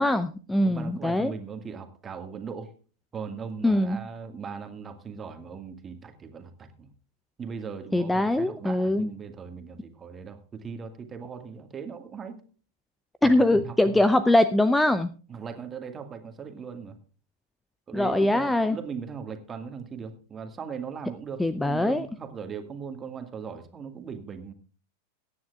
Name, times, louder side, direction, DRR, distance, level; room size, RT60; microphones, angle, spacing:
voice 1, 0.0-1.3 3.6-4.0 7.9-9.1 13.2-15.1 17.9-18.8 21.4-22.1, left 1 dB, 5° left, 14 dB, 0.5 m, -22 dB
voice 2, 0.6-2.7 3.1-6.9 7.4-12.4 13.2-14.0 15.3-17.0 17.9-24.5, right 6 dB, 20° right, 6 dB, 1.8 m, -39 dB
22.0 x 9.7 x 2.4 m, 0.38 s
figure-of-eight pair, 90°, 0 cm